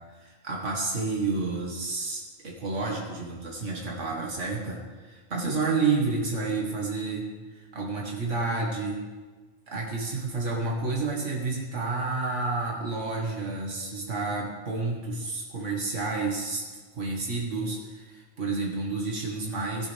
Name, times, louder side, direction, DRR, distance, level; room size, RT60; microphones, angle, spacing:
voice 1, 0.1-9.0 9.7-16.7 16.9-19.9, right 3 dB, 85° right, -2 dB, 2.2 m, -30 dB
17.5 x 11.0 x 3.5 m, 1.3 s
omnidirectional pair, 1.2 m